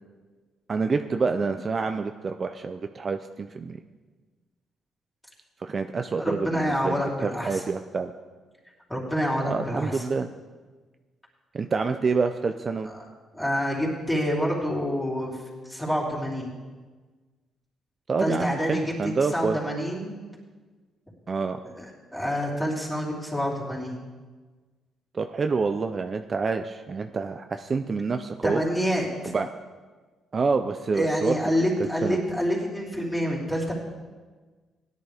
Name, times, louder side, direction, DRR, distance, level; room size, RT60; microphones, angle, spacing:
voice 1, 0.7-3.8 5.6-6.9 7.2-8.1 9.5-10.3 11.5-12.9 18.1-19.6 21.3-21.6 25.1-28.6 29.3-29.5 30.3-31.3 31.8-32.2, right 4 dB, 40° right, 7 dB, 0.5 m, -27 dB
voice 2, 6.2-7.6 8.9-10.0 12.9-13.0 13.3-16.5 18.2-20.1 21.6-24.0 28.4-29.3 30.9-33.7, equal, 10° left, -4 dB, 3.6 m, -27 dB
16.5 x 10.5 x 3.5 m, 1.4 s
cardioid pair, 90°, 0 cm